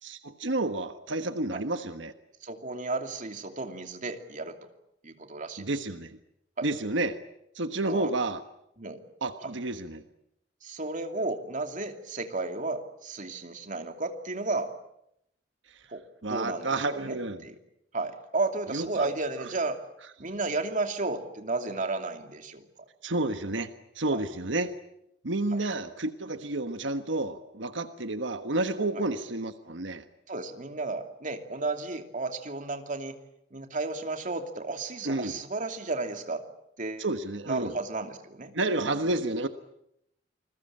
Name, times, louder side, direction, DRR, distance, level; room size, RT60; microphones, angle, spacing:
voice 1, 0.0-2.1 5.6-6.2 6.6-7.2 7.5-8.4 9.2-10.0 15.7-15.8 16.2-17.4 18.7-19.1 23.0-23.7 23.9-24.7 25.2-30.0 35.0-35.3 37.0-37.7 38.5-39.5, right 2 dB, 90° right, 9 dB, 1.4 m, -30 dB
voice 2, 2.4-4.6 5.0-5.7 6.6-6.7 7.8-8.1 8.8-9.0 10.6-14.7 15.9-17.6 17.9-19.8 20.2-22.7 24.1-24.2 25.5-25.6 29.0-29.1 30.3-33.2 33.5-36.4 36.8-37.0 37.5-38.5, right 3 dB, 45° right, 6 dB, 2.7 m, -33 dB
28.5 x 21.0 x 8.8 m, 0.78 s
head